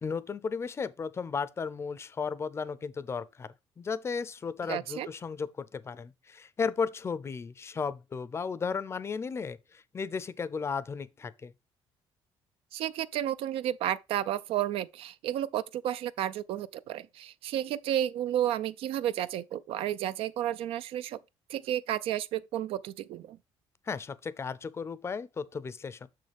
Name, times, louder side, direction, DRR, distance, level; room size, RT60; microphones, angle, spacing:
voice 1, 0.0-11.5 23.9-26.1, left 5 dB, 25° left, 0.5 m, -35 dB
voice 2, 4.7-5.1 12.7-21.2 21.5-23.4, right 11 dB, 70° right, 0.4 m, -32 dB
6.5 x 6.4 x 3.4 m
cardioid pair, 130°, 10 cm